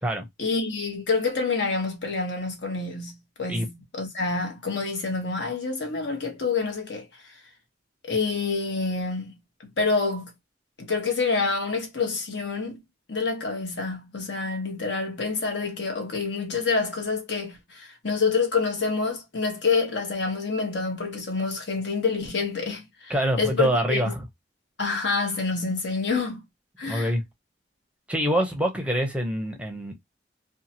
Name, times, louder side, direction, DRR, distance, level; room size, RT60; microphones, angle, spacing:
voice 1, 0.4-7.4 8.0-9.4 9.8-10.3 10.8-12.8 13.1-24.1 24.8-26.4 26.8-27.1, left 4 dB, 75° left, 1.1 m, -27 dB
voice 2, 23.1-24.2 26.9-27.2 28.1-30.0, right 1 dB, 5° right, 0.6 m, -25 dB
2.7 x 2.3 x 2.7 m
head